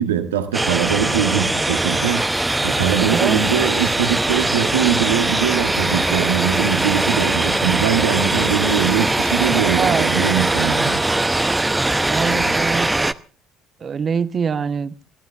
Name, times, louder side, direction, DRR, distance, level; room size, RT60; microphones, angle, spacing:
voice 1, 0.0-11.0 12.3-12.6, right 9 dB, 80° right, 1.7 m, -22 dB
sound 1, 0.5-13.1, right 2 dB, 15° right, 0.8 m, -20 dB
sound 2, 3.1-9.4, left 3 dB, 25° left, 3.2 m, -38 dB
voice 2, 3.1-3.4 9.8-10.1 12.0-12.9 13.8-14.9, right 6 dB, 40° right, 1.2 m, -23 dB
26.5 x 15.5 x 3.5 m
figure-of-eight pair, 55°, 0 cm